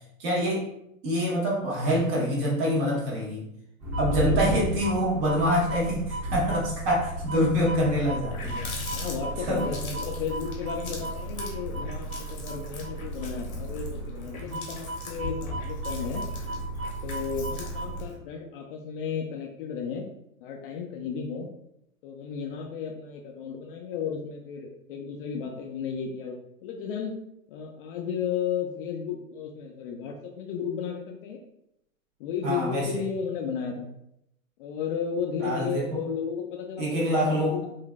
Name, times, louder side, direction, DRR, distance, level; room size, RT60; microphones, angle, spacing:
voice 1, 0.2-0.7 1.0-3.4 3.9-8.7 9.5-9.7 32.4-33.0 35.4-36.1 36.8-37.6, equal, 45° right, -3 dB, 1.4 m, -26 dB
sound 1, 3.8-18.1, right 1 dB, 25° right, 1.4 m, -34 dB
voice 2, 4.0-4.6 8.9-16.2 17.0-20.1 20.4-21.5 22.0-26.3 26.6-27.1 27.5-31.4 32.2-33.9 34.6-37.7, left 6 dB, 40° left, 1 dB, 0.5 m, -33 dB
Water tap faucet, 7.7-7.8 8.1-18.2, left 4 dB, 80° left, 1.0 m, -42 dB
3.8 x 2.6 x 2.3 m, 0.79 s
hypercardioid pair, 105°, 42 cm